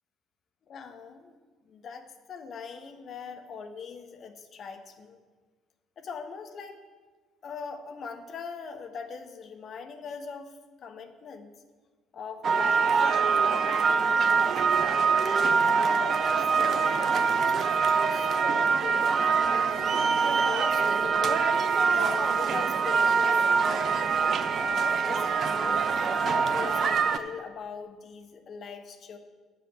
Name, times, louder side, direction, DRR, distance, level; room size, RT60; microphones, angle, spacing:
voice 1, 0.7-5.2 6.0-6.8 7.4-11.5 12.1-13.0 13.3-17.1 18.1-19.5 20.4-21.6 21.9-24.2 24.6-25.9 26.2-29.2, left 6 dB, 50° left, 5 dB, 1.4 m, -41 dB
sound 1, 12.4-27.2, right 5 dB, 45° right, 0.8 m, -24 dB
10.0 x 7.5 x 8.3 m, 1.4 s
figure-of-eight pair, 50°, 0 cm